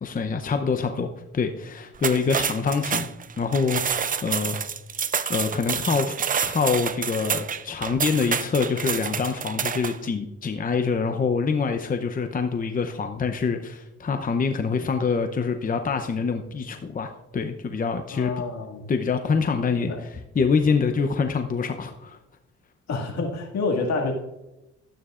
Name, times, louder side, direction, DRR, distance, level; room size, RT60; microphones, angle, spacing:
voice 1, 0.0-3.1 3.4-4.6 5.3-6.1 6.4-18.4 18.9-22.2, left 5 dB, 30° left, 6 dB, 0.7 m, -25 dB
sound 1, 1.9-10.0, right 7 dB, 30° right, 0.5 m, -28 dB
voice 2, 18.1-18.8 19.7-20.0 22.9-24.1, left 3 dB, 65° left, 1 dB, 2.1 m, -28 dB
12.5 x 9.0 x 2.5 m, 0.94 s
cardioid pair, 90°, 30 cm